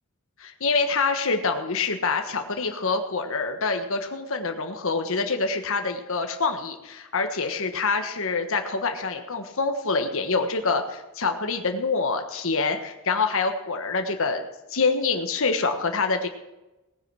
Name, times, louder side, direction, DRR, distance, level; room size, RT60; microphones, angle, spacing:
voice 1, 0.4-14.4 14.7-16.3, left 4 dB, 60° left, 5 dB, 1.3 m, -26 dB
18.0 x 9.9 x 4.8 m, 1.0 s
head